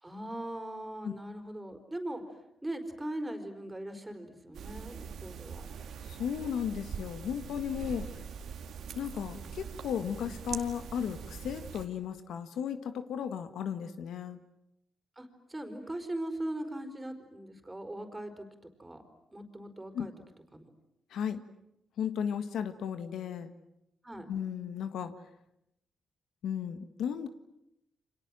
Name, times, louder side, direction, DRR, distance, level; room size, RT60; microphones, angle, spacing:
voice 1, 0.0-5.7 15.2-19.0 19.3-20.1 20.5-20.6 24.0-24.3, right 1 dB, 15° right, 7 dB, 4.6 m, -40 dB
sound 1, 4.5-11.9, right 7 dB, 80° right, 2.3 m, -43 dB
voice 2, 6.1-8.1 8.9-14.4 19.9-20.1 21.1-21.4 22.0-23.5 24.3-25.1 26.4-27.3, left 8 dB, 85° left, 10 dB, 1.7 m, -35 dB
29.5 x 26.0 x 7.6 m, 0.82 s
cardioid pair, 90°, 0 cm